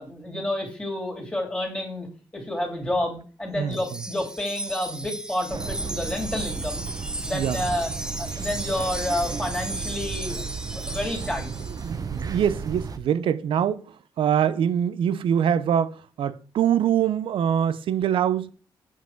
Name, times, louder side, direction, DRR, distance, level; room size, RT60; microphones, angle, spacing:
voice 1, 0.0-2.1 2.3-6.8 7.2-10.4 10.7-11.5, left 1 dB, 10° left, 2.5 m, -29 dB
voice 2, 3.5-4.0 7.3-7.6 11.7-18.5, right 9 dB, 80° right, 0.6 m, -24 dB
Wind chime, 3.7-11.9, right 1 dB, 10° right, 0.7 m, -35 dB
sound 1, 5.5-13.0, right 5 dB, 45° right, 0.7 m, -34 dB
7.5 x 5.8 x 4.5 m
cardioid pair, 110°, 9 cm